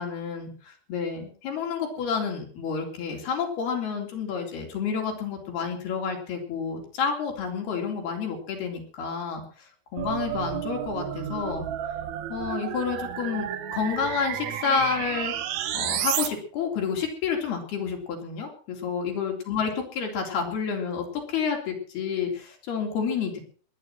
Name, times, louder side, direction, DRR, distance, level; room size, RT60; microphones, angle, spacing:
voice 1, 0.0-11.7 12.3-15.3 15.7-23.4, left 6 dB, 80° left, 2 dB, 5.5 m, -30 dB
sound 1, 10.0-16.3, right 11 dB, 70° right, 1.8 m, -31 dB
20.5 x 9.9 x 6.2 m, 0.44 s
omnidirectional pair, 4.4 m